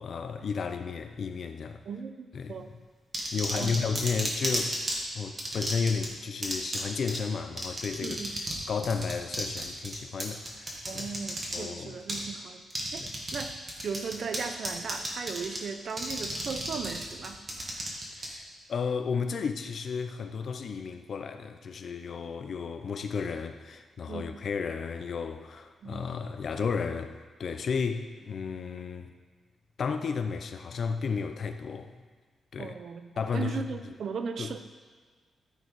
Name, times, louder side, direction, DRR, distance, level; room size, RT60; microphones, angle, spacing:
voice 1, 0.0-1.8 2.3-2.8 3.3-4.8 5.1-11.1 11.5-12.0 13.0-13.1 18.1-29.1 29.8-32.0 32.5-32.7 33.2-33.9 34.4-34.5, left 5 dB, 50° left, 8 dB, 0.5 m, -33 dB
voice 2, 1.9-2.7 3.5-3.8 8.0-8.4 10.8-12.6 12.9-13.1 13.3-13.6 13.8-17.4 24.1-24.3 25.8-26.0 32.6-34.6, right 5 dB, 55° right, 8 dB, 0.6 m, -37 dB
sound 1, 3.1-5.0 5.4-6.1 6.4-6.8 7.1-7.2 7.6-8.6 8.8-11.6 12.1-12.2 12.7-13.4 13.7-14.4 14.6-15.6 15.9-18.3, right 1 dB, 25° right, 1.6 m, -32 dB
13.5 x 4.6 x 4.7 m, 1.5 s
wide cardioid pair, 160°, 0 cm